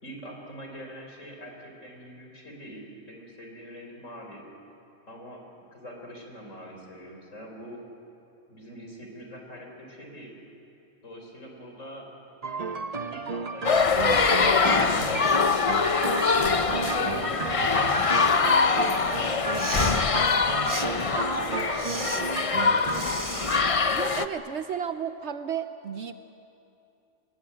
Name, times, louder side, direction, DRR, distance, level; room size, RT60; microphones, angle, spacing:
voice 1, 0.0-4.4 5.1-7.8 8.5-10.3 11.0-12.1 12.7-18.0 18.6-19.8 20.3-23.4, equal, 70° left, 1 dB, 5.0 m, -43 dB
sound 1, 12.4-23.0, right 4 dB, 35° right, 0.9 m, -33 dB
sound 2, 13.6-24.3, left 4 dB, 35° left, 0.6 m, -24 dB
Respiratory sounds, 19.4-20.0 20.6-20.9 21.7-22.2 22.9-23.6, right 2 dB, 15° right, 1.1 m, -34 dB
voice 2, 23.9-26.1, right 8 dB, 60° right, 9 dB, 1.0 m, -33 dB
28.0 x 21.5 x 8.7 m, 2.8 s
omnidirectional pair, 1.4 m